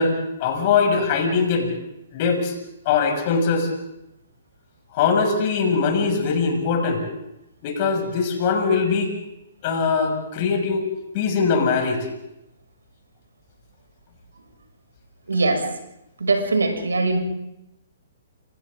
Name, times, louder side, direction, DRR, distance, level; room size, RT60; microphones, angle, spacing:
voice 1, 0.0-1.7 2.1-2.5 2.8-3.7 4.9-7.1 7.6-9.1 9.6-10.8 11.1-12.0, left 5 dB, 40° left, 4 dB, 6.8 m, -21 dB
voice 2, 15.3-15.6 16.2-17.2, right 3 dB, 80° right, 4 dB, 6.7 m, -21 dB
29.5 x 26.5 x 3.9 m, 0.86 s
figure-of-eight pair, 125°, 0 cm